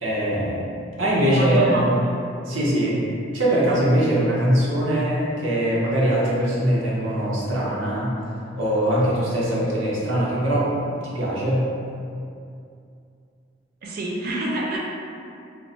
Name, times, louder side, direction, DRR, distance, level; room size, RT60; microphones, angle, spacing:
voice 1, 0.0-0.6 1.0-1.9 2.5-3.0 3.3-8.2 8.6-10.7 11.0-11.7, right 1 dB, 90° right, -6 dB, 0.7 m, -21 dB
voice 2, 1.2-2.2 13.8-14.8, right 1 dB, 50° right, -3 dB, 0.4 m, -27 dB
2.3 x 2.0 x 3.8 m, 2.5 s
head